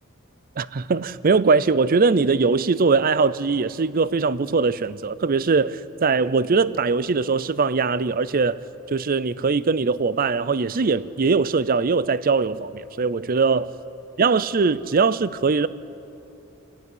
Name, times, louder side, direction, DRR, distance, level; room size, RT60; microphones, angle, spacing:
voice 1, 0.6-8.6 8.9-13.7 14.2-15.7, right 4 dB, 45° right, 0.5 m, -21 dB
27.5 x 14.5 x 9.8 m
head